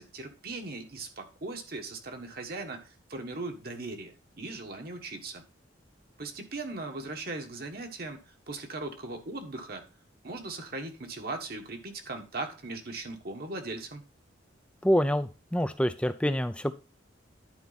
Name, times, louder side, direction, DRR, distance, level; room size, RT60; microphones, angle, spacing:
voice 1, 0.0-5.4 6.2-9.9 10.2-14.0, right 2 dB, 50° right, 4 dB, 1.4 m, -39 dB
voice 2, 14.8-16.7, equal, 5° left, 10 dB, 0.5 m, -26 dB
10.5 x 4.7 x 4.1 m, 0.32 s
head